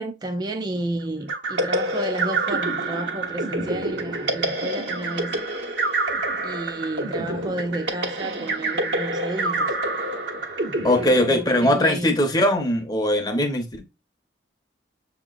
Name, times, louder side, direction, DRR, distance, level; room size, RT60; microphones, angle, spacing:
voice 1, 0.0-5.7 6.4-9.8 10.7-12.2, right 1 dB, 25° right, 0.5 m, -32 dB
sound 1, 1.3-11.9, right 2 dB, 70° right, 1.1 m, -27 dB
voice 2, 10.8-13.8, left 1 dB, 20° left, 0.8 m, -20 dB
6.9 x 2.9 x 2.5 m
head